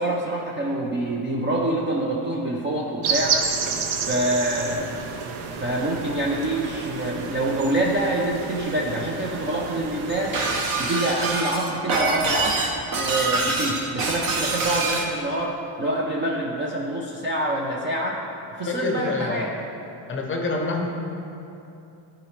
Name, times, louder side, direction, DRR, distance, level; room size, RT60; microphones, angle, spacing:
voice 1, 0.0-3.4 4.1-4.9 5.6-10.4 10.8-12.6 12.9-18.2 18.6-19.5, right 1 dB, 25° right, -3 dB, 0.3 m, -26 dB
sound 1, 3.0-10.6, right 5 dB, 75° right, 0.9 m, -30 dB
Shatter, 10.3-15.1, right 3 dB, 45° right, 0.9 m, -25 dB
voice 2, 18.7-19.4 20.1-20.9, left 3 dB, 25° left, 1 dB, 0.6 m, -26 dB
14.0 x 4.9 x 3.2 m, 2.8 s
cardioid pair, 175°, 50 cm